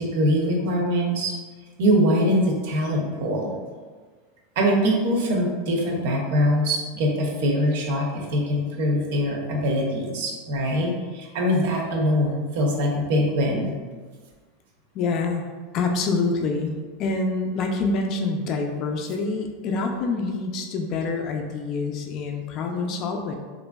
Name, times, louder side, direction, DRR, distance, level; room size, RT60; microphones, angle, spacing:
voice 1, 0.0-1.4 1.8-3.5 4.6-13.7, equal, 70° right, 1 dB, 0.6 m, -23 dB
voice 2, 14.9-15.4 15.7-23.4, left 3 dB, 50° left, 3 dB, 0.4 m, -26 dB
3.0 x 2.5 x 2.2 m, 1.4 s
supercardioid pair, 115°, 0 cm